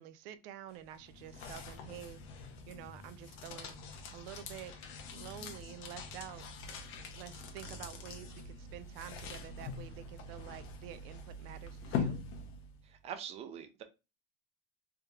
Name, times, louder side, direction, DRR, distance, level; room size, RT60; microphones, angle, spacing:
voice 1, 0.0-2.2 2.7-3.8 4.1-4.7 5.1-12.2, right 11 dB, 80° right, 0.5 m, -49 dB
sound 1, 0.7-12.9, left 5 dB, 45° left, 0.7 m, -43 dB
voice 2, 13.0-13.8, right 8 dB, 25° right, 0.4 m, -43 dB
3.4 x 2.9 x 2.3 m
cardioid pair, 155°, 29 cm